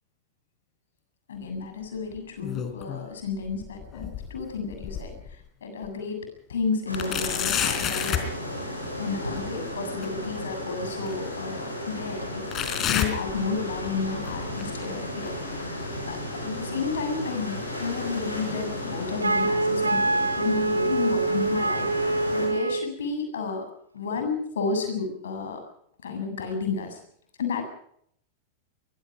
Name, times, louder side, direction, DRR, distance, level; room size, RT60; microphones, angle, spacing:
voice 1, 1.3-6.2 6.5-16.2 16.4-23.6 23.9-25.6 26.0-27.0 27.4-27.6, left 4 dB, 65° left, 6 dB, 7.6 m, -32 dB
sound 1, 2.2-3.1 3.4-5.3 5.8-5.9 6.9-8.3 10.0-10.1 11.1-11.2 12.5-13.9 14.2-14.6 15.3-15.4 16.3-16.4, left 9 dB, 30° left, 3.9 m, -30 dB
sound 2, 6.9-22.5, left 1 dB, 85° left, 7.6 m, -34 dB
Wind instrument woodwind instrument, 19.2-22.9, right 2 dB, 80° right, 1.0 m, -25 dB
24.5 x 22.0 x 5.0 m, 0.68 s
figure-of-eight pair, 90°, 0 cm